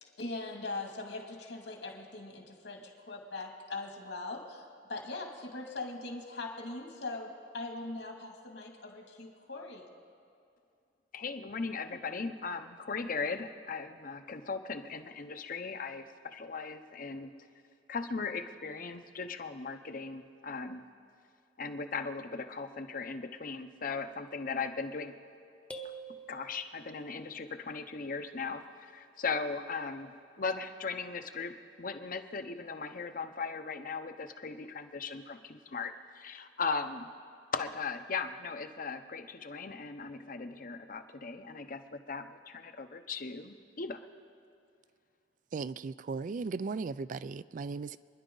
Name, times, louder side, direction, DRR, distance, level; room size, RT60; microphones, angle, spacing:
voice 1, 0.0-9.9, left 2 dB, 75° left, 1 dB, 2.4 m, -41 dB
voice 2, 11.1-17.3 17.9-20.8 21.6-25.1 26.3-30.1 30.4-37.1 37.5-44.0, left 4 dB, 50° left, 8 dB, 0.8 m, -38 dB
sound 1, 25.7-27.2, right 3 dB, 5° left, 0.8 m, -46 dB
voice 3, 45.5-48.0, right 4 dB, 45° right, 17 dB, 0.3 m, -37 dB
28.5 x 11.0 x 3.9 m, 2.4 s
head